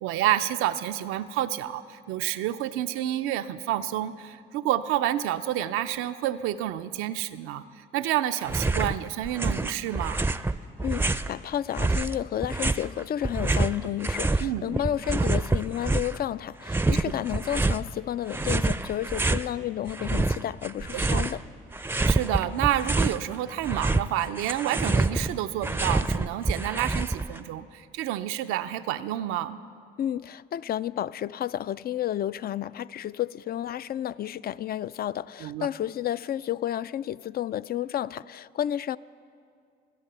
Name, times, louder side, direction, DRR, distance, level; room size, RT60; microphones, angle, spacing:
voice 1, 0.0-10.2 14.4-14.7 15.2-15.3 20.9-21.3 22.0-29.6 35.4-35.7, right 12 dB, 85° right, 0.5 m, -29 dB
sound 1, 8.4-9.0 9.2-11.3 11.8-14.5 14.7-16.2 16.6-17.8 18.3-19.5 19.9-21.4 21.7-23.2 23.5-27.4, right 2 dB, 10° right, 0.5 m, -27 dB
voice 2, 10.8-21.4 30.0-39.0, left 11 dB, 50° left, 0.4 m, -31 dB
24.0 x 8.3 x 6.8 m
supercardioid pair, 65°, 21 cm